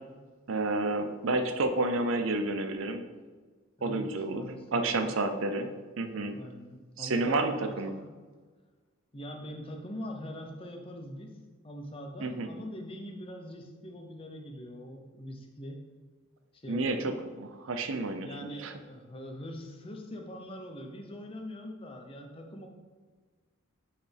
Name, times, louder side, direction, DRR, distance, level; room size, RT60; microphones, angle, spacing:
voice 1, 0.5-3.0 3.8-4.4 4.7-6.4 7.0-7.9 12.2-12.5 16.7-18.3 18.6-18.7, right 2 dB, 65° right, 7 dB, 0.6 m, -30 dB
voice 2, 4.4-5.1 6.3-8.2 9.1-11.4 11.6-15.8 16.5-17.2 18.2-22.7, equal, 25° left, 2 dB, 0.7 m, -42 dB
8.1 x 4.2 x 3.4 m, 1.4 s
head